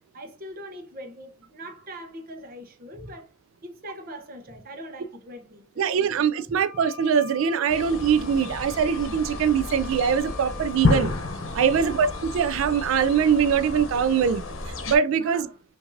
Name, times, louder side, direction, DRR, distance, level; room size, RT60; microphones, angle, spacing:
voice 1, 0.1-3.3 3.6-6.3 11.7-12.0 15.2-15.6, equal, 45° right, 0.8 m, -41 dB
voice 2, 5.8-11.1 11.5-14.4 14.9-15.5, right 7 dB, 80° right, 0.3 m, -22 dB
Wind instrument woodwind instrument, 6.5-13.3, left 6 dB, 30° left, 1.3 m, -45 dB
sound 1, 7.7-15.0, left 3 dB, 75° left, 0.8 m, -31 dB
5.7 x 2.6 x 2.6 m
head